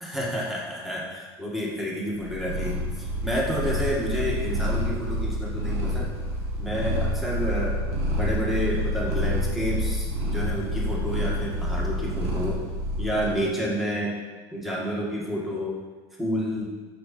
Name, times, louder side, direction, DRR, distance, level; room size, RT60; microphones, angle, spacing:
voice 1, 0.0-6.1 6.6-7.8 8.1-12.6 13.0-14.2 14.5-15.8 16.2-16.7, equal, ahead, -5 dB, 1.9 m, -29 dB
Purr, 2.1-13.4, equal, 50° right, 2.1 m, -28 dB
6.5 x 5.5 x 4.4 m, 1.4 s
supercardioid pair, 105°, 13 cm